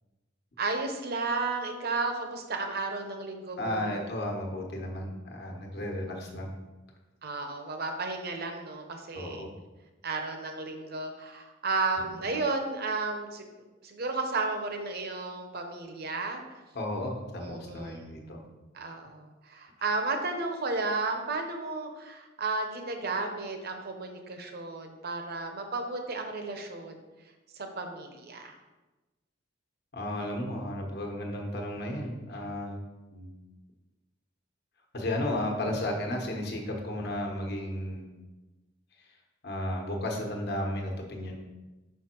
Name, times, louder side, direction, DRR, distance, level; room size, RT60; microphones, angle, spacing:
voice 1, 0.6-4.0 7.2-9.4 10.0-13.5 13.8-16.6 17.4-18.1 18.7-27.0 27.5-28.6, right 3 dB, 55° right, 5 dB, 0.9 m, -33 dB
voice 2, 3.6-6.5 9.1-9.5 12.2-12.3 16.7-18.4 29.9-32.8 33.1-33.3 34.9-38.2 39.0-39.1 39.4-41.4, left 1 dB, 55° left, 1 dB, 1.2 m, -34 dB
5.9 x 5.6 x 4.5 m, 1.1 s
head